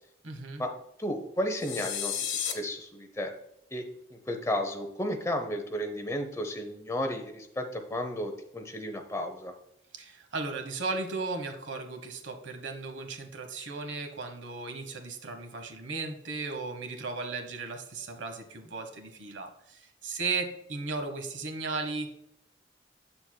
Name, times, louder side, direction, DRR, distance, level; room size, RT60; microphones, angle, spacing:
voice 1, 0.2-0.6 9.9-22.1, right 3 dB, 90° right, 6 dB, 1.1 m, -36 dB
voice 2, 1.0-3.3 3.7-9.5, left 1 dB, 15° left, 5 dB, 0.7 m, -33 dB
sound 1, 1.6-2.5, left 8 dB, 85° left, 1.1 m, -32 dB
7.7 x 6.9 x 2.2 m, 0.78 s
head